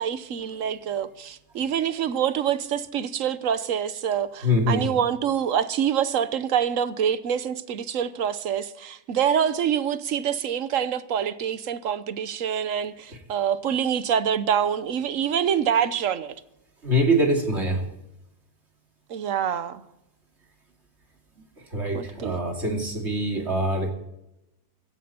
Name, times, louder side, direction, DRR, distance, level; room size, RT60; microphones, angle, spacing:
voice 1, 0.0-16.3 19.1-19.8 21.9-22.4, right 8 dB, 60° right, 1.2 m, -26 dB
voice 2, 4.4-4.8 16.8-17.8 21.7-23.9, equal, 45° right, 2.9 m, -24 dB
16.5 x 15.0 x 4.4 m
omnidirectional pair, 1.7 m